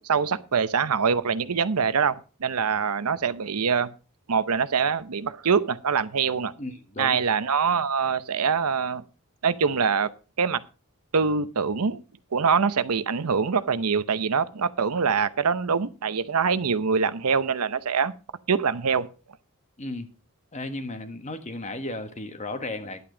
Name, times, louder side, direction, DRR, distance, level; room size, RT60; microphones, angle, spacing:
voice 1, 0.0-3.9 4.3-6.5 7.0-9.0 9.4-10.1 10.4-10.6 11.1-12.0 12.3-18.1 18.5-19.1, right 6 dB, 85° right, 14 dB, 0.7 m, -24 dB
voice 2, 6.6-7.2 19.8-20.1 20.5-23.0, left 2 dB, 30° left, 9 dB, 1.3 m, -34 dB
11.0 x 8.7 x 5.0 m, 0.34 s
head